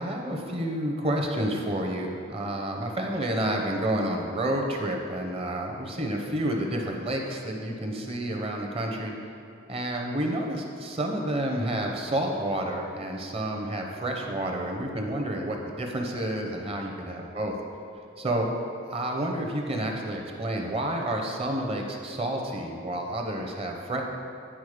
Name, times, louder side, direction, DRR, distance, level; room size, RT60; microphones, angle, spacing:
voice 1, 0.0-9.1 9.7-17.5 18.2-18.5 18.9-24.0, right 1 dB, 30° right, 2 dB, 0.8 m, -30 dB
10.0 x 4.1 x 5.0 m, 2.6 s
head